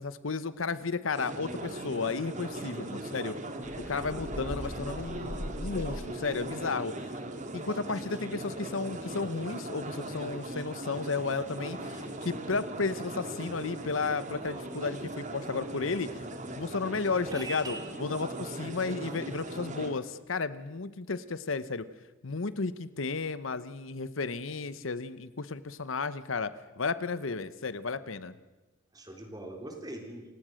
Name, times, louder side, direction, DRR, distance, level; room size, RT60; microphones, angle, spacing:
voice 1, 0.0-3.3 3.8-6.9 7.5-16.1 16.6-17.7 18.0-21.9 22.2-28.3, left 4 dB, 85° left, 15 dB, 0.9 m, -33 dB
sound 1, 1.1-19.9, right 1 dB, 40° right, 2.2 m, -39 dB
voice 2, 2.6-3.0 17.3-17.8 28.9-30.3, right 2 dB, 20° right, 3 dB, 3.5 m, -42 dB
sound 2, 3.6-6.4, equal, 65° left, 2.1 m, -40 dB
28.5 x 16.5 x 6.4 m, 1.2 s
head